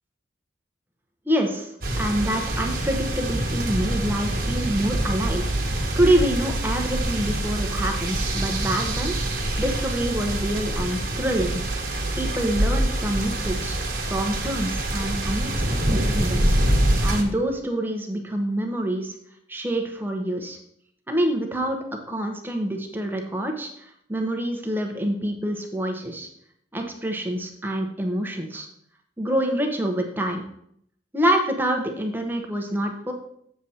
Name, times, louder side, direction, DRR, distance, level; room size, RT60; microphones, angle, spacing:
voice 1, 1.3-5.4 5.7-11.6 12.2-13.8 14.0-15.6 15.9-19.1 19.5-20.6 21.1-21.8 22.1-26.3 26.7-28.7 29.2-30.4 31.1-33.1, right 1 dB, 10° right, 2 dB, 1.0 m, -26 dB
sound 1, 1.8-17.2, right 1 dB, 55° right, 1.6 m, -25 dB
7.7 x 7.2 x 4.2 m, 0.71 s
head